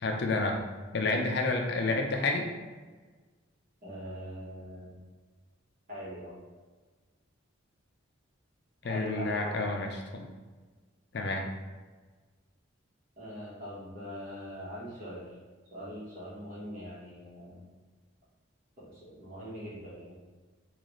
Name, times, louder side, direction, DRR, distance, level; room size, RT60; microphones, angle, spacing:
voice 1, 0.0-0.6 0.9-2.5 8.8-10.3 11.1-11.4, left 3 dB, 55° left, 3 dB, 0.4 m, -29 dB
voice 2, 3.8-5.0 5.9-6.4 8.8-9.7 13.2-15.3 15.7-17.6 18.8-20.2, equal, 40° right, -7 dB, 1.2 m, -42 dB
3.8 x 2.5 x 3.0 m, 1.4 s
head